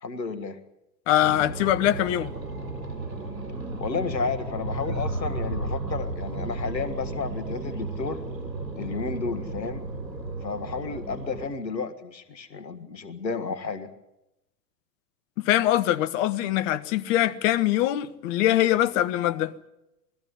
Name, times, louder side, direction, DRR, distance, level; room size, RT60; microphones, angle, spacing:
voice 1, 0.0-0.6 3.8-8.2 8.8-9.8 10.4-13.9, left 4 dB, 90° left, 1.7 m, -32 dB
voice 2, 1.1-2.3 15.4-19.5, left 13 dB, 50° left, 1.2 m, -23 dB
sound 1, 1.2-11.4, right 2 dB, 90° right, 3.7 m, -33 dB
20.0 x 14.0 x 9.7 m
hypercardioid pair, 100°, 49 cm